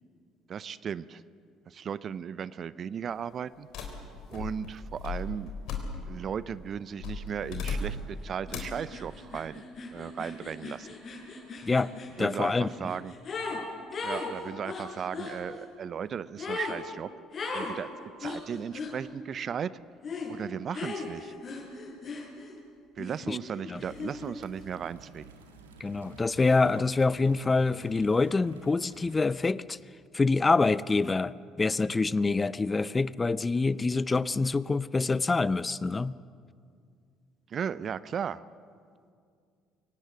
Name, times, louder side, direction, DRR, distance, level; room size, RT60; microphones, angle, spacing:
voice 1, 0.5-1.2 1.7-3.7 4.3-5.5 6.1-9.6 9.9-10.9 12.2-13.1 14.0-17.1 17.5-17.9 18.2-19.7 20.3-21.3 23.0-25.3 26.6-26.8 37.5-38.4, right 7 dB, 45° right, 18 dB, 0.6 m, -36 dB
sound 1, 3.7-6.3 7.0-8.1 8.5-8.8, left 3 dB, 60° left, 3.4 m, -36 dB
sound 2, 8.5-8.6 8.9-13.6 13.9-15.4 16.4-16.8 17.3-17.7 18.2-18.9 20.0-20.3 20.7-22.6 23.0-24.4, left 4 dB, 45° left, 6.8 m, -38 dB
voice 2, 12.2-12.7 23.3-23.4 23.7-23.8 25.8-29.8 30.1-36.1, left 3 dB, 25° left, 19 dB, 0.6 m, -26 dB
sound 3, 23.8-29.2, right 4 dB, 80° right, 1.7 m, -51 dB
25.0 x 18.0 x 7.8 m, 2.2 s
figure-of-eight pair, 55°, 0 cm